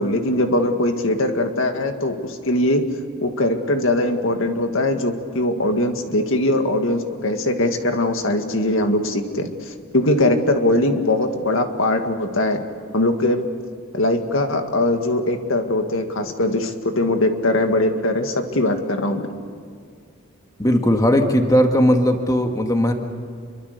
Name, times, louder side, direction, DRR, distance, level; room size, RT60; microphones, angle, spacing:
voice 1, 0.0-2.8 3.2-12.6 12.9-13.4 13.9-19.3, left 1 dB, 65° left, 5 dB, 2.0 m, -21 dB
voice 2, 20.6-22.9, equal, 15° left, 4 dB, 1.8 m, -17 dB
28.5 x 24.0 x 6.8 m, 2.2 s
head